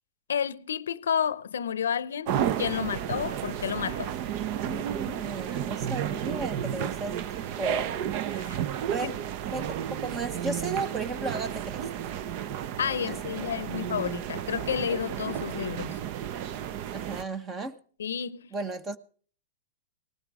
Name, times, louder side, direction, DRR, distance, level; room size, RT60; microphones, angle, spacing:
voice 1, 0.3-2.3 2.6-4.1 8.3-8.6 9.0-9.1 12.8-16.0 18.0-18.5, left 8 dB, 90° left, 0.7 m, -30 dB
sound 1, 2.3-17.2, right 10 dB, 45° right, 0.7 m, -32 dB
voice 2, 4.1-7.9 8.9-9.2 9.5-11.9 13.1-13.5 16.9-17.8 18.5-19.0, right 3 dB, 20° right, 1.0 m, -35 dB
19.0 x 12.5 x 4.8 m
hypercardioid pair, 135°, 0 cm